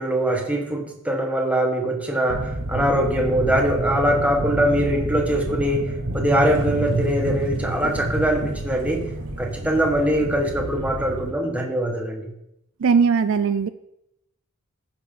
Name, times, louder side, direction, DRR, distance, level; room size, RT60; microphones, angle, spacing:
voice 1, 0.0-9.1 9.4-12.4, right 1 dB, 5° right, 1 dB, 1.3 m, -22 dB
sound 1, 2.3-11.3, right 1 dB, 85° right, 2.0 m, -28 dB
voice 2, 12.8-13.7, right 5 dB, 60° right, 11 dB, 0.4 m, -19 dB
14.0 x 5.8 x 3.8 m, 0.81 s
head